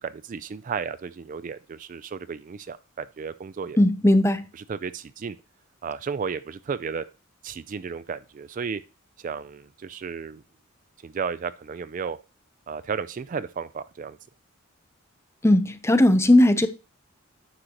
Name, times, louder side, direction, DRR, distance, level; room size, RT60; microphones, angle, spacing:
voice 1, 0.0-3.8 4.7-5.4 5.8-7.1 7.4-8.8 9.2-10.4 11.0-12.2 12.7-14.2, right 6 dB, 40° right, 0.3 m, -33 dB
voice 2, 3.8-4.4 15.4-16.7, left 1 dB, 15° left, 0.6 m, -18 dB
9.9 x 6.5 x 2.9 m
head